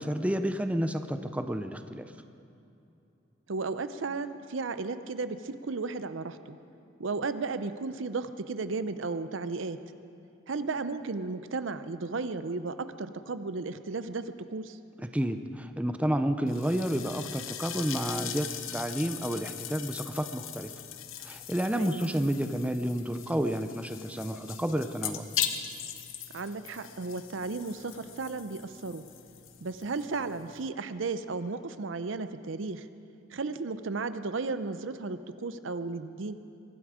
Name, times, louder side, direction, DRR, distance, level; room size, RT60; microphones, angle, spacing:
voice 1, 0.0-2.1 15.1-20.7 21.2-25.2, equal, 5° right, 8 dB, 0.5 m, -30 dB
voice 2, 3.5-6.6 7.0-9.8 10.5-14.8 21.8-22.1 26.3-29.0 29.6-32.9 33.3-36.3, right 3 dB, 70° right, 12 dB, 0.6 m, -34 dB
sound 1, 16.5-30.7, left 9 dB, 80° left, 0.9 m, -40 dB
23.0 x 12.0 x 5.0 m, 2.7 s
head